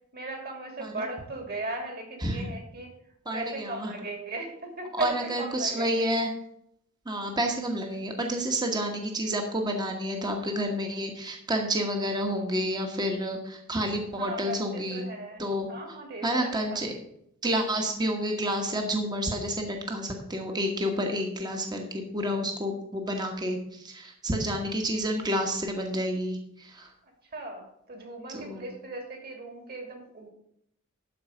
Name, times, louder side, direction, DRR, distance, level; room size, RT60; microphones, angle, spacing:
voice 1, 0.1-2.9 3.3-6.1 14.2-15.4 15.7-16.9 27.0-30.3, right 2 dB, 45° right, 2 dB, 2.8 m, -37 dB
voice 2, 3.2-3.9 4.9-6.3 7.0-15.0 15.4-16.0 16.2-16.9 17.4-26.9 28.3-28.7, equal, 20° right, 2 dB, 1.2 m, -29 dB
12.5 x 4.7 x 6.8 m, 0.73 s
head